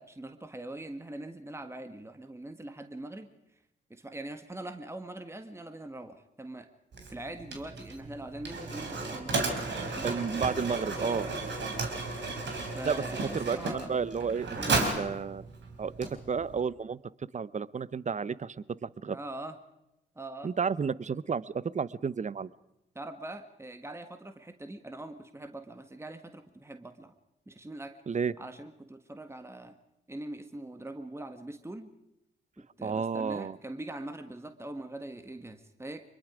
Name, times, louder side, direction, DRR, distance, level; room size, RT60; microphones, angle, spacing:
voice 1, 0.0-3.3 3.9-6.7 7.1-10.3 12.7-13.9 14.6-14.9 19.1-19.6 20.1-20.5 22.9-27.1 27.5-27.9 28.4-29.7 30.1-31.9 32.8-36.0, right 1 dB, 15° right, 8 dB, 1.6 m, -42 dB
Mechanisms, 6.9-16.6, right 3 dB, 60° right, 3.8 m, -34 dB
sound 1, 9.8-15.2, left 6 dB, 60° left, 2.1 m, -48 dB
voice 2, 10.0-11.3 12.9-13.0 13.3-15.5 15.8-17.0 17.3-18.6 18.8-19.2 20.4-22.5 28.1-28.3 32.8-33.6, right 6 dB, 35° right, 19 dB, 0.8 m, -32 dB
24.0 x 22.0 x 5.0 m, 0.88 s
hypercardioid pair, 45°, 21 cm